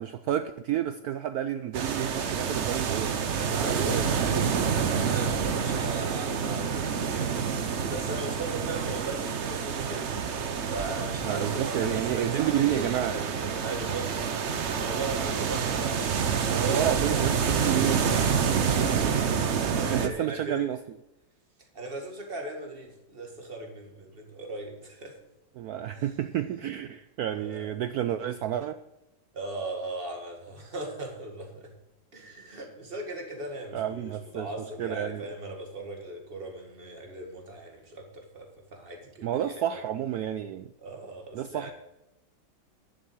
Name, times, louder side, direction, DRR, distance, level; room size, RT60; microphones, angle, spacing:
voice 1, 0.0-4.7 11.2-13.2 16.5-18.1 19.9-21.0 25.6-28.7 33.7-35.3 39.2-40.7 41.3-41.7, right 11 dB, 90° right, 0.8 m, -30 dB
sound 1, 1.7-20.1, right 6 dB, 55° right, 0.8 m, -28 dB
voice 2, 3.4-4.0 5.1-7.5 7.8-10.1 10.6-17.5 18.6-20.7 21.7-25.2 27.3-27.7 29.3-31.7 32.1-39.8 40.8-41.7, right 2 dB, 30° right, 2.2 m, -38 dB
10.5 x 7.6 x 7.2 m
omnidirectional pair, 2.2 m